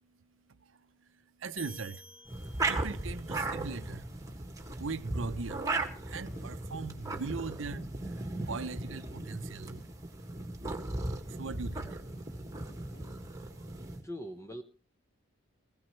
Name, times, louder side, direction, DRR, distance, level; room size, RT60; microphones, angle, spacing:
voice 1, 0.6-2.0 2.6-4.1 4.8-5.7 6.0-9.9 11.3-12.0 13.4-13.8, right 4 dB, 65° right, 0.7 m, -40 dB
sound 1, 1.6-3.2, right 1 dB, 70° left, 5.8 m, -50 dB
sound 2, 2.2-14.0, right 2 dB, 15° right, 1.8 m, -37 dB
sound 3, 4.7-13.7, equal, 35° left, 2.2 m, -57 dB
voice 2, 13.5-14.6, equal, 15° left, 0.9 m, -43 dB
20.5 x 15.5 x 3.2 m
head